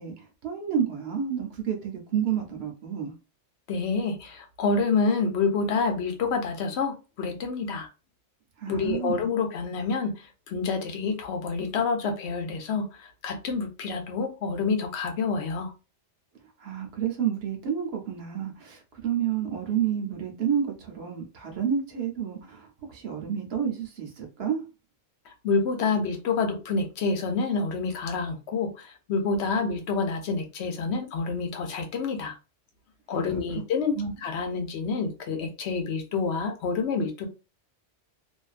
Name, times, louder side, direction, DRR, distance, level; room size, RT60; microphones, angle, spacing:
voice 1, 0.0-3.1 8.6-9.2 16.6-24.6 33.2-33.4 34.0-34.2, right 8 dB, 65° right, 0.9 m, -30 dB
voice 2, 3.7-7.9 8.7-15.7 25.3-32.3 33.1-37.3, left 4 dB, 70° left, 0.8 m, -28 dB
2.5 x 2.2 x 2.4 m
omnidirectional pair, 1.2 m